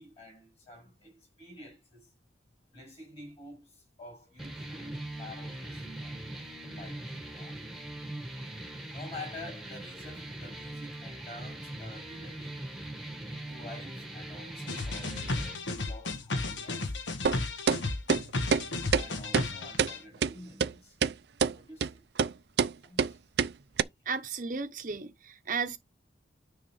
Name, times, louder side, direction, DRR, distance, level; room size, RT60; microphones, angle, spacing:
voice 1, 0.0-2.1 2.7-6.2 6.7-7.6 8.9-12.7 13.2-17.0 18.8-21.0 21.5-22.0 22.8-23.2, left 2 dB, 30° left, 6.7 m, -49 dB
sound 1, 4.4-15.5, right 1 dB, ahead, 1.3 m, -41 dB
sound 2, 14.7-20.0, left 2 dB, 80° left, 1.3 m, -34 dB
sound 3, 17.2-17.4 17.7-17.8 18.1-18.2 18.5-18.6 18.9-19.0 19.3-19.5 19.8-19.9 20.2-20.3 20.6-20.7 21.0-21.1 21.4-21.5 21.8-21.9 22.2-22.3 22.6-22.7 23.0-23.1 23.4-23.5 23.8-23.9, right 6 dB, 60° right, 0.4 m, -25 dB
voice 2, 24.1-25.8, right 5 dB, 45° right, 0.8 m, -34 dB
9.8 x 3.7 x 5.5 m
head